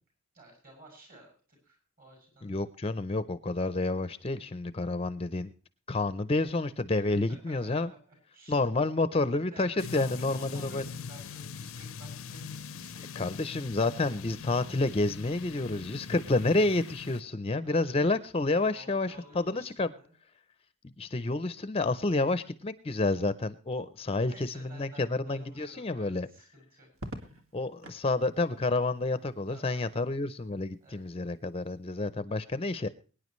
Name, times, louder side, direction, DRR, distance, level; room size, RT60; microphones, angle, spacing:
voice 1, 0.3-2.6 7.1-8.0 8.3-8.6 9.5-13.5 17.6-18.0 18.6-20.1 24.2-27.1 29.5-30.0 30.8-31.2, right 1 dB, 45° right, 3 dB, 7.6 m, -53 dB
voice 2, 2.4-5.5 5.9-7.9 8.5-10.8 13.2-19.9 21.0-26.3 27.5-32.9, left 2 dB, 25° left, 14 dB, 0.5 m, -29 dB
sound 1, 9.8-17.2, left 6 dB, 75° left, 0.5 m, -42 dB
Crackle, 26.9-28.1 29.7-30.2, right 1 dB, 75° right, 1.9 m, -44 dB
23.0 x 10.0 x 3.1 m, 0.37 s
head